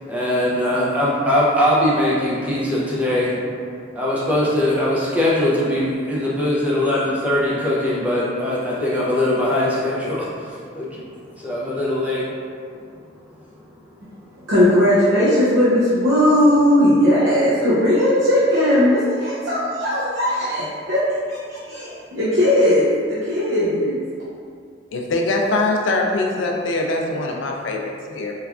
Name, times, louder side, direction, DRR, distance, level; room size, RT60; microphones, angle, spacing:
voice 1, 0.1-3.4 3.9-11.0 11.4-12.2, left 1 dB, 10° right, -8 dB, 0.5 m, -21 dB
voice 2, 14.5-21.0 21.3-24.0, left 1 dB, 75° right, -11 dB, 0.6 m, -18 dB
voice 3, 24.9-28.3, left 2 dB, 75° left, 1 dB, 0.4 m, -22 dB
3.1 x 2.3 x 2.4 m, 2.2 s
head